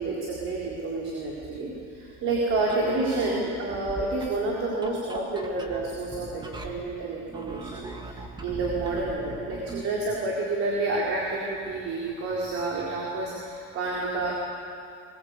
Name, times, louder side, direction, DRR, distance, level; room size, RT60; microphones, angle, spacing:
voice 1, 0.0-14.3, right 2 dB, 45° right, -3 dB, 4.1 m, -29 dB
sound 1, 2.6-9.9, right 2 dB, 15° right, 1.7 m, -40 dB
21.5 x 21.0 x 8.2 m, 2.6 s
cardioid pair, 150°, 32 cm